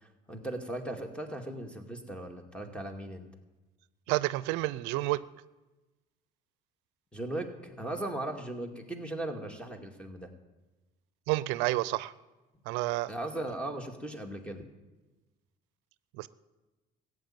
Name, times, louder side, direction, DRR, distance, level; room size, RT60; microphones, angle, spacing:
voice 1, 0.0-3.3 7.1-10.3 13.1-14.6, right 1 dB, 5° left, 5 dB, 2.2 m, -38 dB
voice 2, 4.1-5.2 11.3-12.1 12.7-13.1 16.2-16.3, right 18 dB, 85° right, 17 dB, 0.5 m, -29 dB
14.5 x 8.2 x 8.8 m, 1.1 s
supercardioid pair, 95°, 18 cm